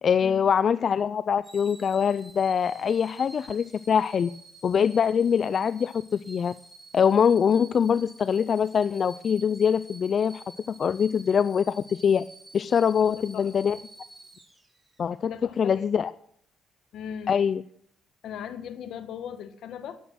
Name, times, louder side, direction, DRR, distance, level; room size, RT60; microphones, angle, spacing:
voice 1, 0.0-4.3 4.6-6.5 6.9-12.2 12.5-13.8 15.0-15.3 15.6-16.1 17.3-17.6, left 7 dB, 50° left, 15 dB, 0.4 m, -23 dB
sound 1, 1.4-15.1 15.6-15.7, right 2 dB, 20° right, 3.0 m, -50 dB
voice 2, 13.0-13.8 15.3-15.8 16.9-17.3 18.2-20.0, left 8 dB, 75° left, 10 dB, 1.4 m, -39 dB
12.5 x 10.0 x 6.3 m, 0.64 s
cardioid pair, 90°, 0 cm